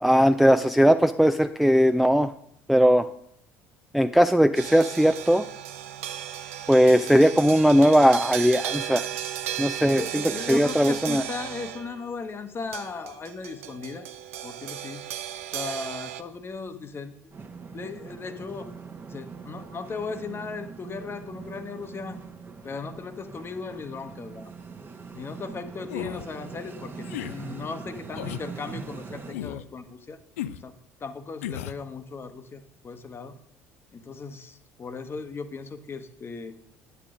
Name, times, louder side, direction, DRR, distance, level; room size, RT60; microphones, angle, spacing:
voice 1, 0.0-2.3 2.7-3.1 3.9-5.4 6.7-9.1 9.6-10.2 10.5-11.2, equal, ahead, 9 dB, 0.4 m, -19 dB
sound 1, 4.5-12.0 12.7-16.2, right 11 dB, 75° right, 0.6 m, -35 dB
voice 2, 9.8-14.1 14.4-15.0 15.5-17.1 17.7-18.7 19.1-22.2 22.6-24.5 25.1-30.2 30.6-30.7 31.0-33.4 33.9-36.5, left 4 dB, 30° left, 10 dB, 1.0 m, -37 dB
sound 2, 17.3-29.3, right 5 dB, 30° right, 1.0 m, -42 dB
sound 3, 25.9-26.3 27.0-27.4 28.1-28.5 29.3-29.7 30.4-30.6 31.4-31.8, left 12 dB, 75° left, 0.4 m, -34 dB
9.8 x 8.0 x 3.7 m, 0.72 s
figure-of-eight pair, 60°, 7 cm